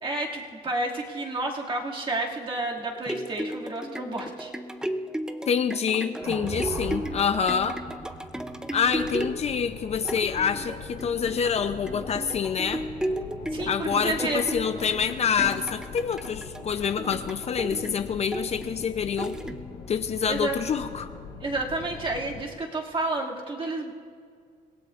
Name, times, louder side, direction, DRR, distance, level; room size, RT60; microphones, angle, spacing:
voice 1, 0.0-4.5 13.5-14.4 20.3-20.6 21.4-23.9, right 2 dB, 30° right, -2 dB, 2.3 m, -30 dB
sound 1, 2.8-19.9 20.4-20.5, right 1 dB, 5° right, 0.5 m, -35 dB
voice 2, 5.5-7.8 8.7-12.8 13.7-19.3 19.9-21.1, left 7 dB, 40° left, 9 dB, 0.6 m, -27 dB
sound 2, 6.2-10.5, right 3 dB, 65° right, 5.2 m, -39 dB
sound 3, 8.8-22.4, left 5 dB, 80° left, 3.4 m, -42 dB
30.0 x 16.5 x 2.5 m, 2.2 s
cardioid pair, 110°, 17 cm